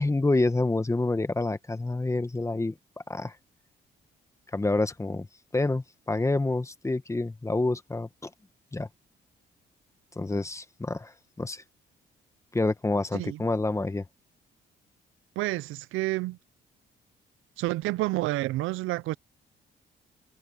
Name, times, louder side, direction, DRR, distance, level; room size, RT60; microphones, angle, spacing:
voice 1, 0.0-2.7 3.1-3.3 4.5-5.3 5.5-8.3 8.7-8.9 10.2-11.6 12.5-14.1, left 2 dB, 15° left, 1.2 m, -28 dB
voice 2, 15.4-16.4 17.6-19.2, right 18 dB, 90° right, 0.5 m, -29 dB
cardioid pair, 90°, 20 cm